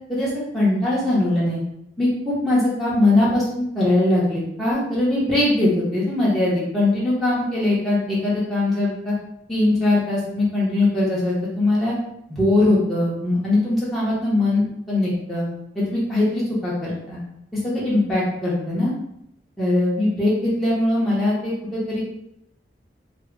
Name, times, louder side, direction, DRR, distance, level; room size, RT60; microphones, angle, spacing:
voice 1, 0.5-1.6 2.0-9.1 9.5-11.9 12.3-15.5 15.7-17.2 17.6-18.9 19.6-22.0, left 2 dB, ahead, -9 dB, 1.0 m, -21 dB
3.4 x 2.4 x 3.8 m, 0.79 s
head